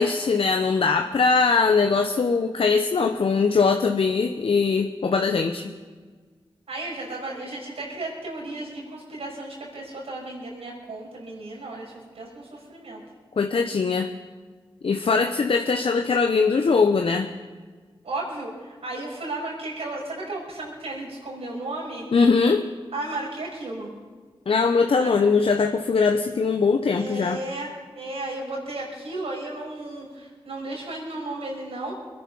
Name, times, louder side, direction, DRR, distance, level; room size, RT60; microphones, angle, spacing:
voice 1, 0.0-5.7 13.4-14.1 14.8-17.3 22.1-22.6 24.5-27.4, left 4 dB, 70° left, 5 dB, 0.9 m, -21 dB
voice 2, 6.7-13.0 18.0-22.1 22.9-23.9 25.0-25.2 26.9-32.0, right 2 dB, 85° right, -3 dB, 5.7 m, -34 dB
22.5 x 10.0 x 5.6 m, 1.5 s
cardioid pair, 45°, 10 cm